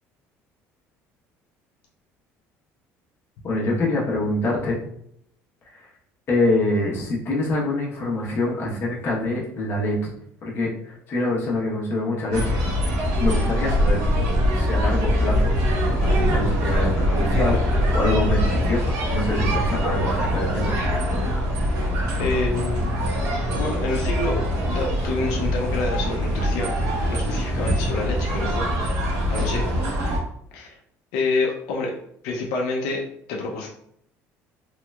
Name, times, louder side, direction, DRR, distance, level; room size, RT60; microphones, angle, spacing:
voice 1, 3.4-4.8 6.3-10.1 10.4-12.4 13.2-14.1 14.5-15.5 15.9-20.7 29.4-29.5, left 1 dB, 40° left, -4 dB, 1.0 m, -25 dB
sound 1, 12.3-30.2, equal, 75° right, 1.0 m, -23 dB
voice 2, 22.2-23.0 23.5-26.8 27.0-28.7 29.3-29.6 30.5-30.8 31.1-32.0 32.2-33.0 33.3-33.7, left 3 dB, 90° left, 0 dB, 0.5 m, -27 dB
3.2 x 2.8 x 2.3 m, 0.70 s
cardioid pair, 130°, 6 cm